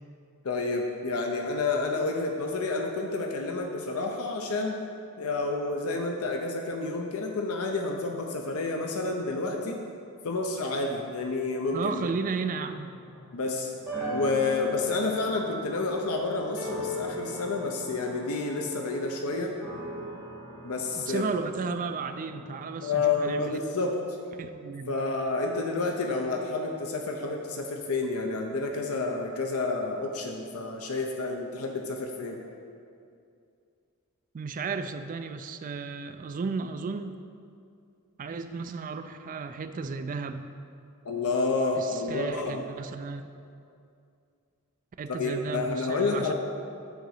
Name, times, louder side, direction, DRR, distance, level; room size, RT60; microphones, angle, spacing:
voice 1, 0.4-4.7 5.2-9.8 10.2-12.1 13.3-13.7 14.1-19.5 20.6-21.3 22.8-24.0 24.9-32.4 41.0-42.6 45.2-46.3, left 3 dB, 70° left, 2 dB, 0.6 m, -29 dB
voice 2, 11.7-12.9 21.0-23.6 24.3-24.9 34.3-37.2 38.2-40.5 41.8-43.3 45.0-46.3, right 4 dB, 35° right, 9 dB, 0.3 m, -34 dB
sound 1, 11.9-23.5, equal, 5° right, 1.7 m, -40 dB
8.1 x 3.9 x 6.4 m, 2.4 s
head